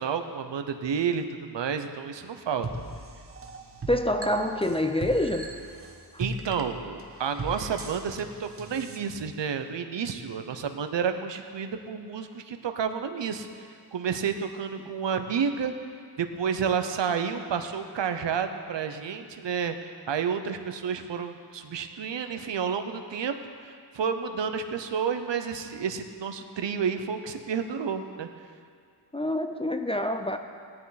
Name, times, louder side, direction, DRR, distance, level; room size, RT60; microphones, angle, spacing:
voice 1, 0.0-2.7 6.2-15.7 16.2-23.4 23.6-28.3, right 6 dB, 80° right, 7 dB, 0.9 m, -30 dB
sound 1, 2.6-9.0, right 2 dB, 30° right, 1.0 m, -39 dB
voice 2, 3.9-5.5 29.1-30.4, left 1 dB, 15° left, 6 dB, 0.5 m, -26 dB
17.0 x 10.5 x 4.1 m, 2.2 s
wide cardioid pair, 135°, 43 cm